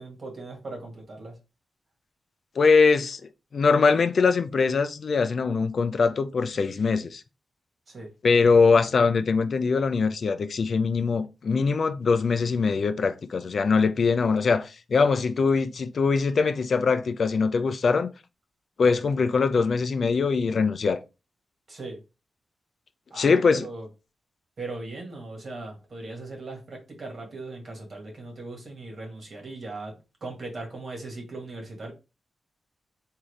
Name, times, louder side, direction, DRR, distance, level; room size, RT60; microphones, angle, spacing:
voice 1, 0.0-1.3 7.9-8.1 21.7-22.0 23.1-23.9 24.6-29.9 30.2-31.9, right 2 dB, 45° right, 1.6 m, -38 dB
voice 2, 2.6-3.2 3.5-7.2 8.2-18.1 18.8-21.0 23.2-23.7, left 4 dB, 55° left, 0.4 m, -22 dB
3.6 x 2.7 x 3.2 m
wide cardioid pair, 115°, 0 cm